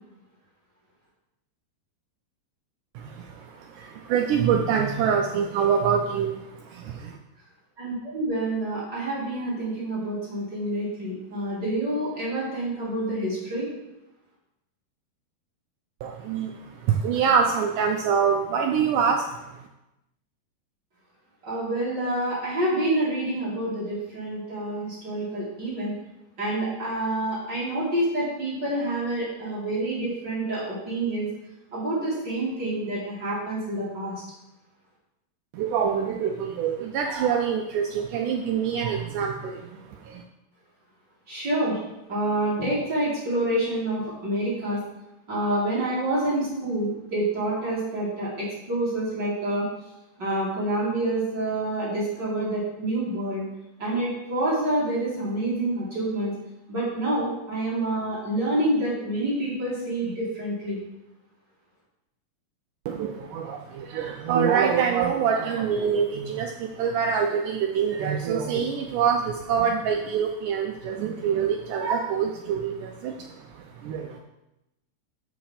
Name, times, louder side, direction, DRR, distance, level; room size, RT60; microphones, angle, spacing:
voice 1, 3.0-7.2 16.0-19.7 35.5-40.2 62.9-74.2, right 7 dB, 85° right, 3 dB, 1.8 m, -25 dB
voice 2, 7.8-13.7 21.4-25.9 26.4-31.3 31.7-34.1 41.3-41.8 42.1-44.8 45.3-49.6 50.2-53.4 53.8-56.3 56.7-60.8, right 1 dB, 30° right, -8 dB, 2.9 m, -27 dB
7.2 x 5.9 x 5.7 m, 0.92 s
omnidirectional pair, 4.3 m